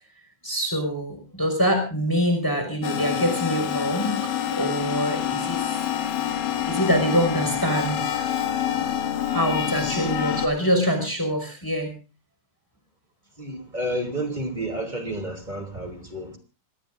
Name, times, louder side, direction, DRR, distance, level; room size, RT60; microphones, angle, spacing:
voice 1, 0.4-4.2 4.5-5.6 6.7-8.2 9.3-11.9, equal, 5° left, 5 dB, 5.3 m, -24 dB
sound 1, 2.8-10.5, left 10 dB, 85° left, 3.2 m, -27 dB
voice 2, 13.4-16.4, right 1 dB, 15° right, 4 dB, 2.8 m, -31 dB
26.0 x 19.0 x 2.6 m, 0.33 s
omnidirectional pair, 3.6 m